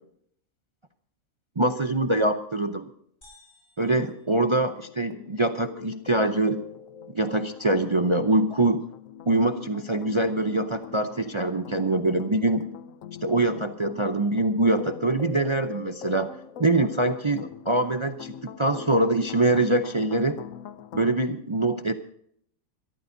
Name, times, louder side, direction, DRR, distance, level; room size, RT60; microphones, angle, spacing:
voice 1, 1.6-2.9 3.8-6.6 7.1-8.8 9.3-12.7 13.2-16.3 16.6-18.3 18.6-20.4 20.9-21.9, right 2 dB, 30° right, 7 dB, 0.6 m, -24 dB
sound 1, 3.2-5.2, left 2 dB, 35° left, 7.1 m, -58 dB
sound 2, 3.9-21.1, left 8 dB, 70° left, 1.1 m, -43 dB
23.5 x 13.5 x 2.7 m, 0.66 s
omnidirectional pair, 1.4 m